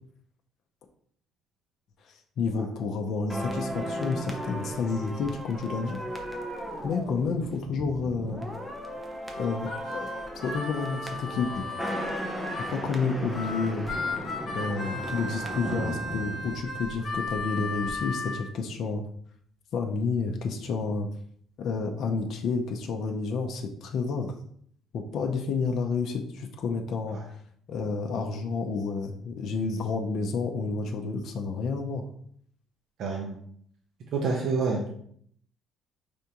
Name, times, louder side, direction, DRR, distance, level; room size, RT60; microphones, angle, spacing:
voice 1, 2.1-6.0 6.8-8.5 9.4-11.8 12.7-13.9 14.5-19.0 19.7-21.1 21.6-24.3 24.9-27.2 27.7-32.1, left 4 dB, 50° left, 2 dB, 0.5 m, -30 dB
sound 1, 3.3-17.4 17.7-17.9, equal, 5° right, 0.6 m, -36 dB
Harmonica, 9.3-12.8 13.3-18.4, left 2 dB, 30° left, 1.8 m, -35 dB
voice 2, 33.0-33.3 34.1-34.9, right 4 dB, 50° right, 0 dB, 0.6 m, -28 dB
5.0 x 3.4 x 2.8 m, 0.63 s
cardioid pair, 165°, 0 cm